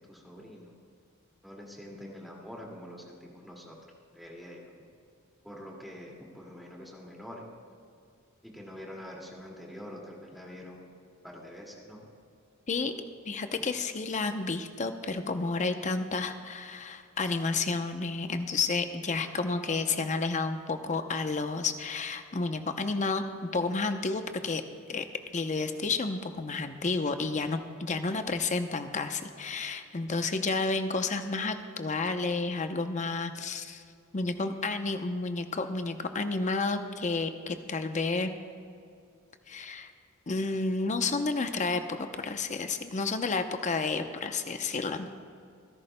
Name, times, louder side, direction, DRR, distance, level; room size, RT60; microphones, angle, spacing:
voice 1, 0.1-0.8 1.4-3.8 4.1-4.7 5.4-7.4 8.4-10.9 11.2-12.0 13.6-13.7, equal, ahead, -2 dB, 2.1 m, -45 dB
voice 2, 13.3-24.6 24.9-25.0 25.3-33.8 34.1-38.3 39.5-39.9 40.3-45.1, left 3 dB, 35° left, 8 dB, 0.7 m, -31 dB
26.5 x 11.0 x 2.2 m, 2.4 s
head